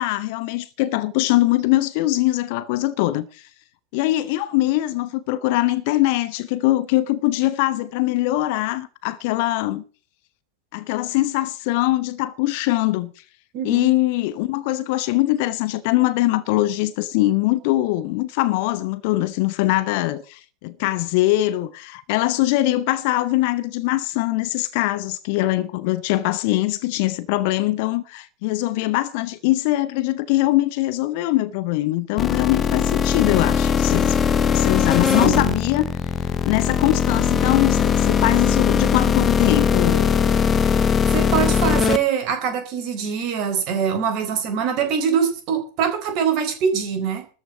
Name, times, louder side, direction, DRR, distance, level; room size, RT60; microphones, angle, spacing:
voice 1, 0.0-3.4 3.9-9.8 10.7-13.1 13.6-34.2 34.5-35.8 36.5-40.1, left 17 dB, 45° left, 0.9 m, -22 dB
voice 2, 13.5-13.9 35.0-35.5 41.1-47.2, right 7 dB, 40° right, 4.1 m, -23 dB
sound 1, 32.2-42.0, left 7 dB, 20° left, 0.9 m, -20 dB
13.5 x 6.2 x 9.6 m
figure-of-eight pair, 90°, 0 cm